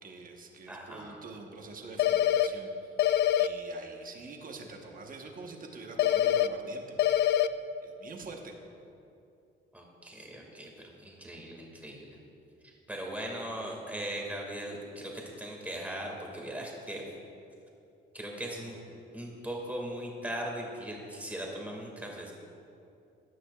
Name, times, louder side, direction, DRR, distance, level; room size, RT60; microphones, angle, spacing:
voice 1, 0.0-2.9 3.4-8.5 18.6-18.9, right 3 dB, 45° right, 2 dB, 1.2 m, -46 dB
voice 2, 0.7-1.2 9.7-12.2 12.9-17.0 18.1-18.8 19.1-22.3, right 1 dB, 10° right, -1 dB, 2.1 m, -39 dB
sound 1, 2.0-2.5 3.0-3.5 6.0-6.5 7.0-7.5, left 11 dB, 60° left, 0.4 m, -24 dB
15.0 x 9.9 x 2.4 m, 2.6 s
cardioid pair, 90°, 20 cm